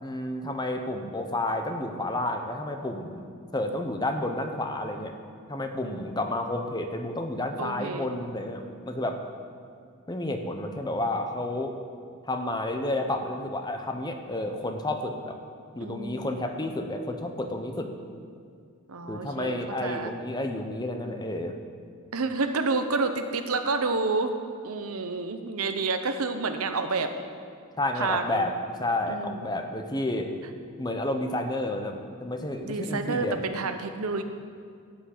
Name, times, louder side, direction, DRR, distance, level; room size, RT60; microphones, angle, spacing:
voice 1, 0.0-3.3 3.5-5.1 5.5-9.2 10.1-11.7 12.2-15.4 15.7-17.9 19.1-21.5 27.8-28.5 28.8-30.3 30.8-33.4, left 1 dB, 20° left, 5 dB, 0.8 m, -30 dB
voice 2, 5.8-6.2 7.6-8.1 15.8-16.3 18.9-20.1 22.1-24.3 24.6-27.1 28.0-28.5 29.1-29.5 32.6-34.2, right 3 dB, 80° right, 7 dB, 0.9 m, -29 dB
13.0 x 5.9 x 8.4 m, 2.2 s
head